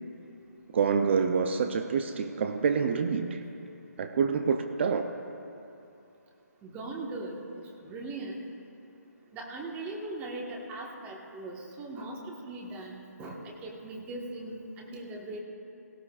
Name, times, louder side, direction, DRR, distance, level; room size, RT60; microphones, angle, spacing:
voice 1, 0.7-3.4 4.0-5.1, right 6 dB, 40° right, 7 dB, 0.6 m, -27 dB
voice 2, 6.6-8.4 9.3-15.4, right 2 dB, 15° right, -1 dB, 1.4 m, -39 dB
18.0 x 16.5 x 2.4 m, 2.8 s
figure-of-eight pair, 150°, 9 cm